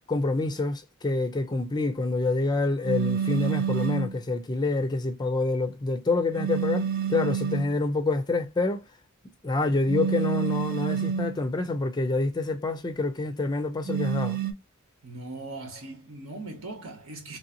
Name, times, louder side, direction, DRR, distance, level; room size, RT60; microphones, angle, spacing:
voice 1, 0.1-8.8 9.4-14.4, left 2 dB, 20° left, 0.4 m, -27 dB
sound 1, 2.8-4.2 6.3-7.7 9.9-11.4 13.8-14.5, right 7 dB, 45° right, 0.6 m, -28 dB
voice 2, 15.0-17.4, right 2 dB, 80° right, 1.3 m, -39 dB
3.2 x 2.7 x 2.7 m
head